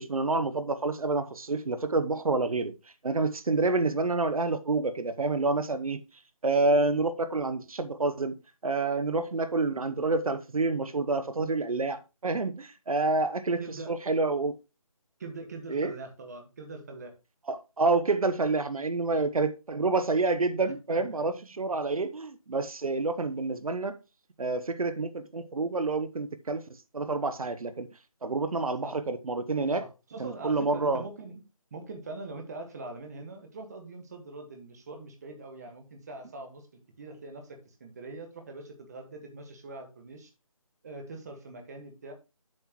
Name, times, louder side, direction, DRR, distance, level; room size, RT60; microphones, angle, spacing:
voice 1, 0.0-2.7 3.0-6.0 6.4-8.3 8.6-14.6 15.7-15.9 17.5-24.0 24.4-26.6 26.9-27.9 28.2-29.8 30.2-31.0, right 3 dB, 85° right, 0.9 m, -28 dB
voice 2, 13.6-14.0 15.2-17.1 19.1-19.2 20.9-21.1 28.8-29.0 29.8-31.4 31.7-36.7 37.0-40.3 40.8-42.1, right 3 dB, 30° right, 1.6 m, -42 dB
7.6 x 7.3 x 3.0 m
figure-of-eight pair, 170°, 18 cm